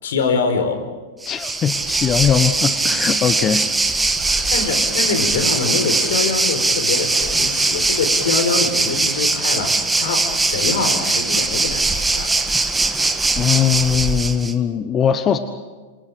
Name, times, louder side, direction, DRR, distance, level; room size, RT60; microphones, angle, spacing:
voice 1, 0.0-0.8 4.5-12.3, left 4 dB, 70° left, 7 dB, 4.7 m, -24 dB
voice 2, 1.2-3.7 4.3-4.5 13.4-15.4, left 8 dB, 30° left, 10 dB, 1.2 m, -20 dB
Waves surf, 1.2-14.5, right 3 dB, 10° right, 1.8 m, -20 dB
28.0 x 27.0 x 5.1 m, 1.3 s
hypercardioid pair, 100°, 0 cm